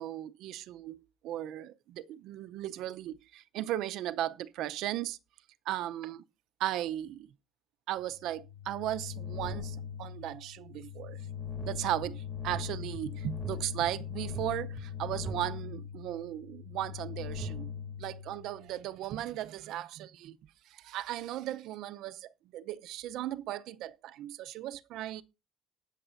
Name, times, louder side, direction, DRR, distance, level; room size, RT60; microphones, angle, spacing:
voice 1, 0.0-5.2 5.7-6.2 6.6-7.3 7.9-11.2 11.6-17.7 18.0-20.4 20.7-25.2, right 13 dB, 70° right, 0.6 m, -36 dB
sound 1, 8.1-18.8, left 5 dB, 15° left, 1.7 m, -40 dB
19.0 x 6.6 x 2.6 m
cardioid pair, 165°, 0 cm